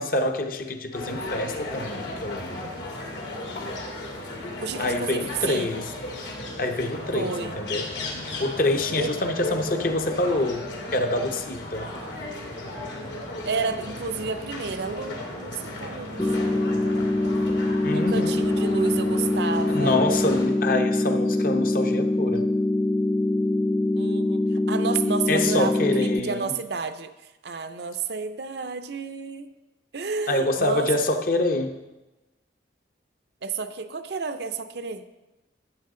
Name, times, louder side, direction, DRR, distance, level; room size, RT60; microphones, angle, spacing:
voice 1, 0.0-2.7 4.8-5.9 6.6-7.9 8.4-10.6 10.9-11.9 17.8-18.4 19.7-22.5 25.3-26.5 30.3-31.8, left 2 dB, 50° left, 5 dB, 0.8 m, -26 dB
sound 1, 0.9-20.5, left 1 dB, 85° left, 2.2 m, -35 dB
voice 2, 4.6-5.7 7.1-7.6 9.0-9.1 13.4-17.0 17.9-20.0 23.9-29.5 29.9-30.9 33.4-35.0, right 4 dB, 65° right, 9 dB, 0.6 m, -31 dB
sound 2, 16.2-26.2, left 2 dB, 15° left, 0.6 m, -24 dB
13.0 x 8.1 x 3.8 m, 1.1 s
head